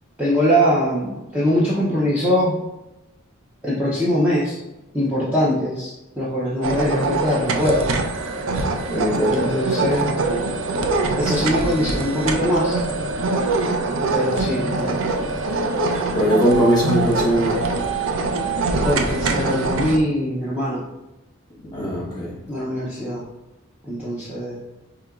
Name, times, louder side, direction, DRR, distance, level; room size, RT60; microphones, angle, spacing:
voice 1, 0.2-2.6 3.6-4.6 4.9-7.9 9.3-10.2 11.2-12.8 14.1-14.9 18.8-20.8 22.5-23.2 23.8-24.6, equal, 10° right, -8 dB, 0.6 m, -22 dB
sound 1, 6.6-20.0, right 3 dB, 65° right, 0.4 m, -23 dB
voice 2, 8.9-9.4 16.1-17.6 21.7-22.3, equal, 20° left, -4 dB, 1.2 m, -20 dB
4.8 x 2.8 x 2.3 m, 0.98 s
head